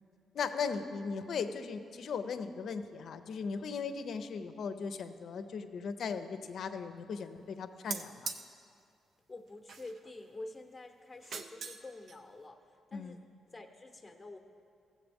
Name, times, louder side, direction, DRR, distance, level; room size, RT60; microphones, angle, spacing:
voice 1, 0.3-8.3 12.9-13.2, left 5 dB, 65° left, 10 dB, 0.5 m, -38 dB
sound 1, 7.9-8.4 9.7-10.1 11.1-11.8 12.1-12.2, right 5 dB, 65° right, 0.5 m, -40 dB
voice 2, 9.3-13.2 13.5-14.4, left 2 dB, 15° left, 3 dB, 0.8 m, -48 dB
15.0 x 7.5 x 3.5 m, 2.5 s
cardioid pair, 90°, 0 cm